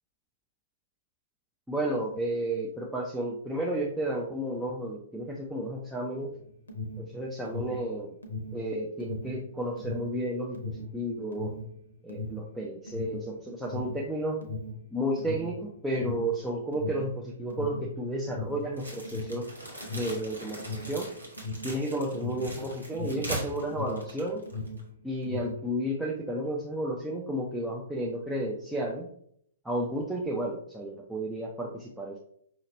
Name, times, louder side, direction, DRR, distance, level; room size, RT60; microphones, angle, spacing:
voice 1, 1.7-6.4 7.0-8.1 8.5-11.5 12.0-14.4 14.9-19.5 19.9-21.1 21.6-24.4 25.0-29.1 29.6-32.2, right 1 dB, 5° right, -4 dB, 0.5 m, -32 dB
Alarm, 6.3-24.1 24.4-25.7, left 2 dB, 70° left, 0.8 m, -38 dB
sound 1, 18.8-24.9, right 1 dB, 90° right, 1.4 m, -40 dB
5.6 x 2.9 x 2.7 m, 0.67 s
figure-of-eight pair, 110°, 0 cm